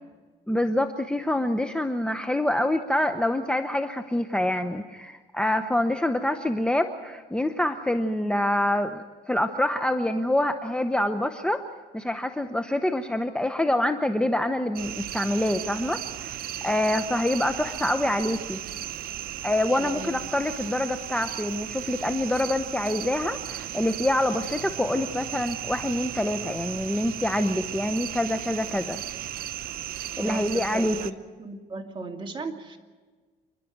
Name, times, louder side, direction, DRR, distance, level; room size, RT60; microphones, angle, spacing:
voice 1, 0.5-11.6 11.9-16.4 16.6-18.6 19.4-29.0 30.2-31.1, left 1 dB, 5° left, 8 dB, 0.8 m, -26 dB
sound 1, 14.8-31.1, right 11 dB, 60° right, 0.9 m, -36 dB
voice 2, 19.8-20.2 30.2-31.1 31.4-32.8, right 3 dB, 30° right, 3 dB, 2.5 m, -37 dB
28.5 x 11.5 x 9.3 m, 1.4 s
cardioid pair, 110°, 17 cm